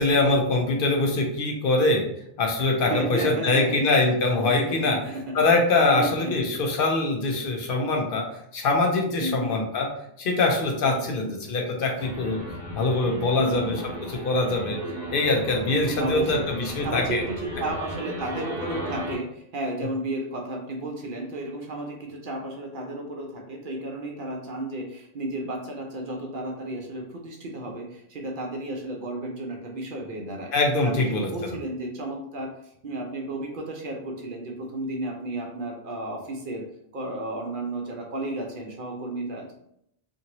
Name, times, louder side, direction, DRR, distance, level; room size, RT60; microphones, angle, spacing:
voice 1, 0.0-2.1 2.4-5.0 5.3-8.3 8.5-9.9 10.2-12.4 12.8-14.8 15.1-17.2 30.5-31.3, left 2 dB, 65° left, 2 dB, 0.7 m, -23 dB
voice 2, 2.9-3.9 4.4-5.4 6.0-6.5 9.2-9.5 10.8-11.1 13.4-13.7 15.9-16.5 16.8-30.5 30.8-32.5 32.8-36.6 36.9-39.5, right 1 dB, 60° right, 1 dB, 0.7 m, -33 dB
sound 1, 12.0-19.2, right 1 dB, 20° right, 0.6 m, -35 dB
2.6 x 2.6 x 2.9 m, 0.74 s
omnidirectional pair, 1.0 m